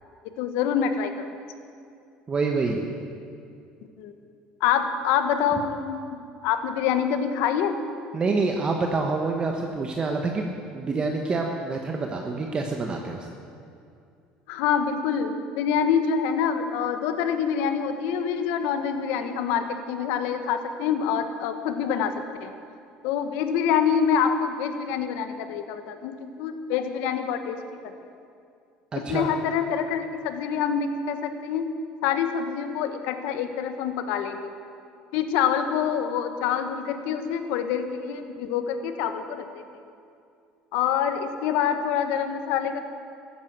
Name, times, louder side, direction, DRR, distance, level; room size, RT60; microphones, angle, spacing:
voice 1, 0.4-1.3 4.0-4.1 4.6-7.8 14.5-22.5 23.0-27.9 28.9-31.7 32.0-34.5 35.1-39.6 40.7-42.8, left 7 dB, 80° left, 8 dB, 1.2 m, -26 dB
voice 2, 2.3-2.8 8.1-13.3 28.9-29.3, right 3 dB, 30° right, 2 dB, 1.3 m, -27 dB
13.5 x 10.0 x 8.0 m, 2.5 s
supercardioid pair, 105°, 3 cm